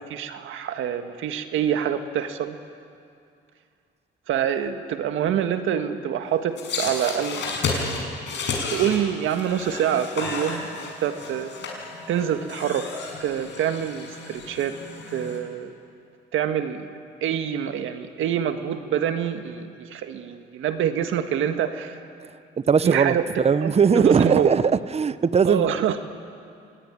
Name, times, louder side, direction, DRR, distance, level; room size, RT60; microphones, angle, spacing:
voice 1, 0.1-2.6 4.3-8.1 8.7-11.5 12.1-12.9 13.2-14.8 15.1-15.7 16.3-16.9 17.2-22.0 22.8-23.3 23.6-24.5 25.5-26.0, right 9 dB, 80° right, 8 dB, 1.7 m, -26 dB
sound 1, 6.6-15.4, left 4 dB, 65° left, 6.4 m, -32 dB
voice 2, 22.7-25.7, right 6 dB, 30° right, 15 dB, 0.8 m, -19 dB
25.5 x 19.5 x 9.8 m, 2.4 s
cardioid pair, 90°, 20 cm